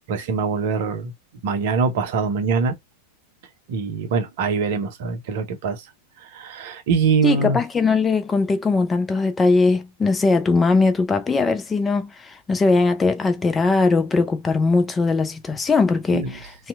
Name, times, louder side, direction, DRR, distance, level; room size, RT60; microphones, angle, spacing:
voice 1, 0.1-1.1 1.4-2.8 3.7-5.9 6.2-7.6 16.1-16.3, right 5 dB, 50° right, 0.6 m, -23 dB
voice 2, 7.2-16.7, left 3 dB, 15° left, 0.4 m, -20 dB
2.6 x 2.1 x 2.3 m
figure-of-eight pair, 90°, 0 cm